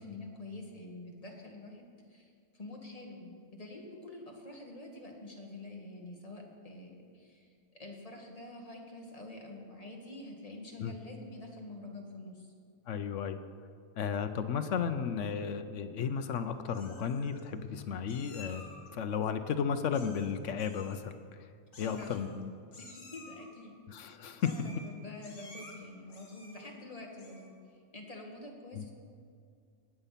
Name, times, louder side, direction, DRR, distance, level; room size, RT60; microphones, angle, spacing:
voice 1, 0.0-12.5 21.8-22.3 22.8-28.9, left 2 dB, 25° left, 0 dB, 1.6 m, -47 dB
voice 2, 12.9-13.4 14.0-18.6 18.9-21.2 21.8-22.5 23.9-24.7 28.7-28.8, left 7 dB, 65° left, 9 dB, 0.9 m, -34 dB
Meow, 16.0-16.4 16.7-17.4 18.1-18.9 19.9-20.3 20.6-21.0 21.7-22.4 22.7-23.5 24.4-24.9 25.2-25.7 26.1-26.7 27.1-27.5, left 3 dB, 85° left, 2.4 m, -52 dB
18.5 x 6.9 x 5.7 m, 2.2 s
omnidirectional pair, 1.5 m